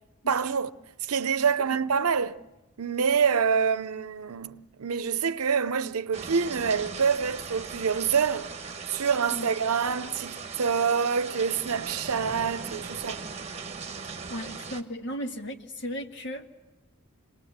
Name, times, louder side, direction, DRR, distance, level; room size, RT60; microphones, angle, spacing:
voice 1, 0.3-0.7 1.0-2.4 2.8-8.5 8.9-13.2, right 6 dB, 85° right, 0.7 m, -26 dB
sound 1, 6.1-14.8, right 5 dB, 30° right, 1.2 m, -39 dB
voice 2, 14.3-16.5, equal, 55° left, 1.8 m, -35 dB
26.5 x 19.5 x 8.0 m
head